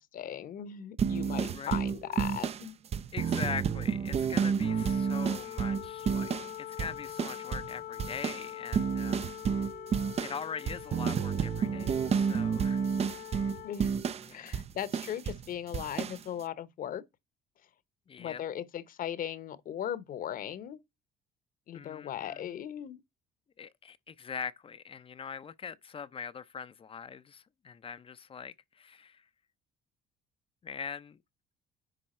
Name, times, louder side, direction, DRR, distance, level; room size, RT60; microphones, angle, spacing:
voice 1, 0.0-2.8 13.6-14.0 14.3-17.0 18.2-20.8 21.7-23.0, left 10 dB, 55° left, 1.0 m, -38 dB
sound 1, 1.0-6.5 6.8-7.7 8.0-15.5 15.7-16.2, right 7 dB, 40° right, 0.5 m, -30 dB
voice 2, 3.1-9.3 10.2-12.8 14.2-14.6 18.1-18.4 21.7-22.6 23.6-29.2 30.6-31.2, left 6 dB, 35° left, 0.6 m, -42 dB
Wind instrument woodwind instrument, 4.6-13.8, left 12 dB, 75° left, 1.1 m, -44 dB
10.0 x 3.5 x 4.3 m
cardioid pair, 110°, 17 cm